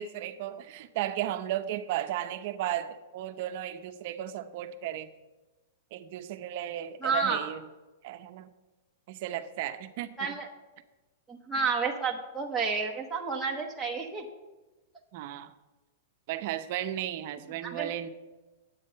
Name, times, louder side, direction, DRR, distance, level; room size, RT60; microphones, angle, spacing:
voice 1, 0.0-5.1 5.9-7.6 8.0-8.5 9.1-10.4 11.6-11.7 15.1-15.5 16.3-18.1, right 12 dB, 45° right, 9 dB, 0.7 m, -35 dB
voice 2, 7.0-7.5 10.2-10.5 11.3-14.2 17.6-17.9, right 4 dB, 5° right, -3 dB, 0.8 m, -30 dB
10.5 x 8.4 x 5.5 m, 1.1 s
supercardioid pair, 165°, 0 cm